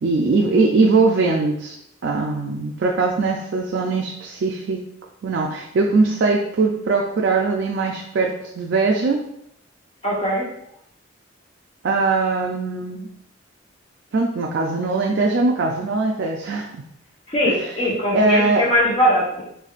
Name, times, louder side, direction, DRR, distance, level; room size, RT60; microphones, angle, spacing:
voice 1, 0.0-1.8 2.0-4.8 5.2-9.2 11.8-13.1 14.1-16.8 17.5-17.6 18.1-18.6, right 3 dB, 65° right, 0 dB, 0.4 m, -21 dB
voice 2, 10.0-10.5 17.3-19.4, equal, 30° left, -5 dB, 0.9 m, -20 dB
4.5 x 2.5 x 2.4 m, 0.74 s
head